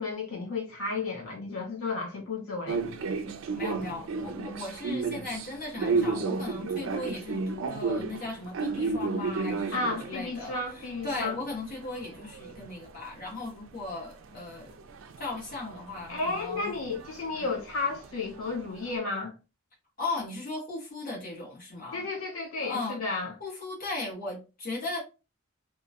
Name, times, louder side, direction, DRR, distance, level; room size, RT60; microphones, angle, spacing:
voice 1, 0.0-2.8 9.7-11.4 16.1-19.3 21.9-23.3, left 3 dB, 90° left, 1.3 m, -33 dB
sound 1, 2.7-13.5 13.8-19.0, right 4 dB, 65° right, 0.4 m, -34 dB
voice 2, 3.5-14.7 15.2-16.7 17.3-17.5 20.0-22.1 22.6-23.0 23.4-25.0, left 2 dB, 40° left, 1.4 m, -37 dB
2.8 x 2.2 x 2.8 m
head